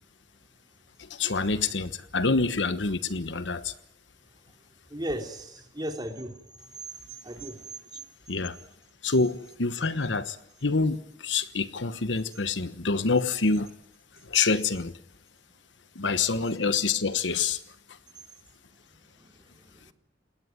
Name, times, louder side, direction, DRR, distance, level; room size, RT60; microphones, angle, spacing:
voice 1, 1.0-3.7 8.3-8.6 9.0-10.4 10.6-13.7 14.2-14.9 15.9-17.6, left 4 dB, 85° left, 1.2 m, -26 dB
voice 2, 4.9-6.4 7.2-7.7 19.2-19.9, right 1 dB, 25° right, 3.4 m, -36 dB
29.0 x 18.0 x 9.4 m
head